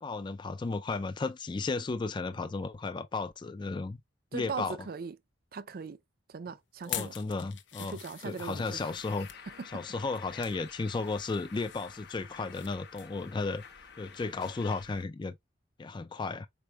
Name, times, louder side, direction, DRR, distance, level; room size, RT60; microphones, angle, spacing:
voice 1, 0.0-4.0 4.3-4.8 6.8-8.0 8.2-9.3 9.7-13.6 14.0-15.4 15.8-16.5, left 3 dB, 25° left, 0.3 m, -34 dB
voice 2, 4.3-5.2 5.5-6.0 6.3-7.2 7.8-8.9, right 4 dB, 55° right, 0.5 m, -39 dB
sound 1, 6.8-9.4 10.0-10.6 11.0-12.7 13.0-13.2 13.6-13.7, left 10 dB, 85° left, 0.8 m, -44 dB
Bird, 8.7-15.0, left 6 dB, 65° left, 0.9 m, -50 dB
4.9 x 4.3 x 2.2 m
head